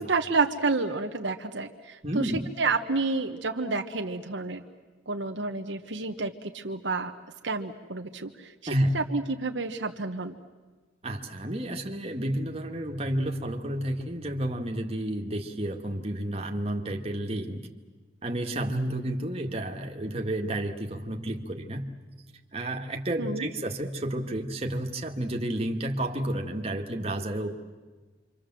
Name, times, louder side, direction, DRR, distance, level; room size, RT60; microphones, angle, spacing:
voice 1, 0.0-2.3 2.6-4.6 5.1-7.1 7.4-8.5 8.9-10.4 23.2-23.5, right 3 dB, 75° right, 4 dB, 1.2 m, -29 dB
voice 2, 2.0-2.5 8.7-9.0 11.0-17.7 18.2-21.9 22.5-27.6, right 1 dB, 30° right, 2 dB, 2.0 m, -31 dB
28.0 x 25.5 x 7.6 m, 1.3 s
head